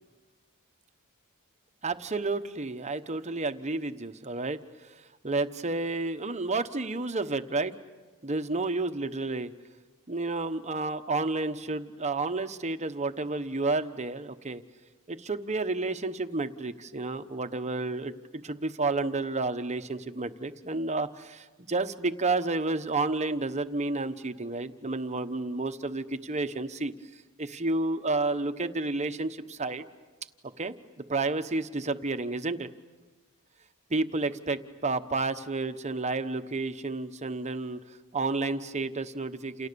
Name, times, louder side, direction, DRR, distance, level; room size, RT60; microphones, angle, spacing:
voice 1, 1.8-4.6 4.8-4.9 5.2-7.7 8.2-9.5 10.1-14.6 15.1-26.9 27.4-29.8 30.6-30.7 31.1-32.7 33.9-37.8 38.1-39.7, right 3 dB, 30° right, 9 dB, 1.1 m, -31 dB
29.0 x 29.0 x 6.9 m, 1.3 s
head